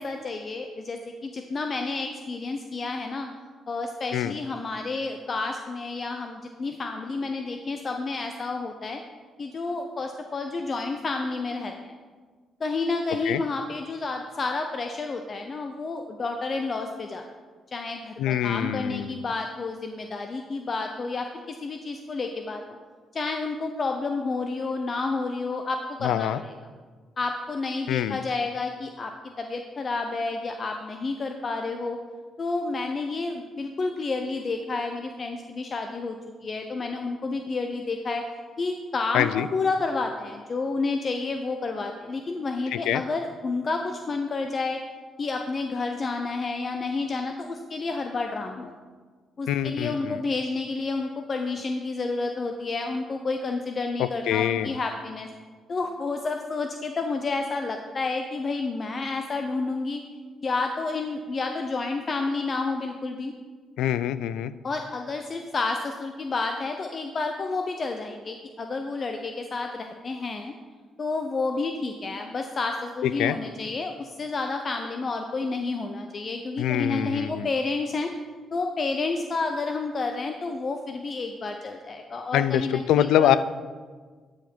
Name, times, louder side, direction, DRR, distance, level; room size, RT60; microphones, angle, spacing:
voice 1, 0.0-3.3 3.7-9.0 9.4-11.9 12.6-17.2 17.7-22.6 23.1-26.5 27.2-29.1 29.4-32.0 32.4-38.2 38.6-44.8 45.2-48.7 49.4-55.3 55.7-60.0 60.4-63.3 64.6-70.5 71.0-78.1 78.5-83.4, left 3 dB, 40° left, 5 dB, 0.6 m, -30 dB
voice 2, 18.2-19.3 26.0-26.4 27.9-28.2 39.1-39.5 42.7-43.0 49.5-50.2 54.0-54.8 63.8-64.5 73.0-73.4 76.6-77.5 82.3-83.4, left 11 dB, 90° left, 14 dB, 0.3 m, -25 dB
11.5 x 5.1 x 4.4 m, 1.5 s
cardioid pair, 90°, 0 cm